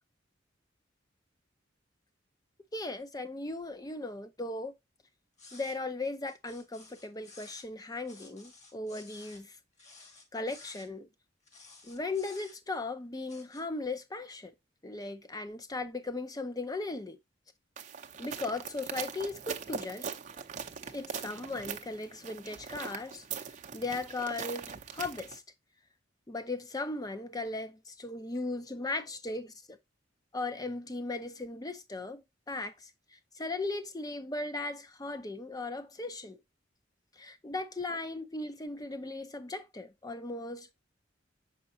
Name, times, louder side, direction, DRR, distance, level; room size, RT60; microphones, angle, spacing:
voice 1, 2.7-4.7 5.5-9.6 10.3-11.1 11.8-14.5 14.8-17.2 18.2-20.1 20.9-23.2 23.7-25.4 26.3-29.8 30.3-32.2 32.5-36.4 37.2-40.7, left 2 dB, 20° left, 0.6 m, -37 dB
sound 1, 5.4-5.8 6.3-7.7 8.0-9.4 9.8-10.9 11.5-12.8 13.2-13.6, left 3 dB, 40° left, 1.6 m, -53 dB
sound 2, 17.8-25.4, right 6 dB, 40° right, 0.6 m, -41 dB
7.0 x 5.0 x 2.7 m
head